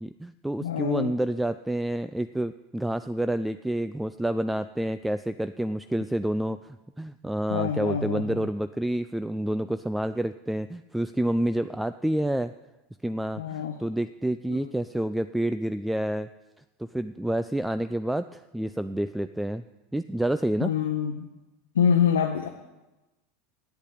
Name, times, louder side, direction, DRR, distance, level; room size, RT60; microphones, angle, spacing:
voice 1, 0.0-12.5 13.0-16.3 16.8-19.6 19.9-20.7, right 1 dB, 5° right, 12 dB, 0.4 m, -28 dB
voice 2, 0.6-1.1 7.5-8.5 13.4-13.8 14.5-14.7 20.6-21.3 21.7-22.5, left 7 dB, 85° left, 3 dB, 0.8 m, -26 dB
8.4 x 8.1 x 8.6 m, 1.1 s
hypercardioid pair, 85°, 0 cm